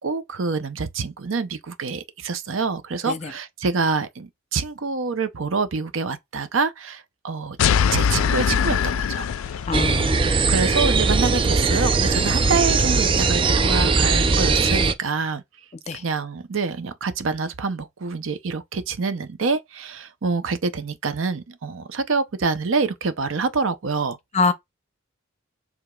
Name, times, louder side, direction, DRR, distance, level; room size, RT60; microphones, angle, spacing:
voice 1, 0.0-7.6 7.9-9.6 10.5-15.4 15.9-24.2, right 4 dB, 65° right, 0.6 m, -26 dB
sound 1, 7.6-10.2, left 7 dB, 80° left, 0.4 m, -22 dB
voice 2, 9.7-10.3 10.6-10.7 15.9-16.0 24.3-24.5, left 4 dB, 35° left, 0.6 m, -24 dB
sound 2, 9.7-14.9, right 4 dB, 25° right, 0.4 m, -20 dB
4.9 x 3.5 x 2.3 m
head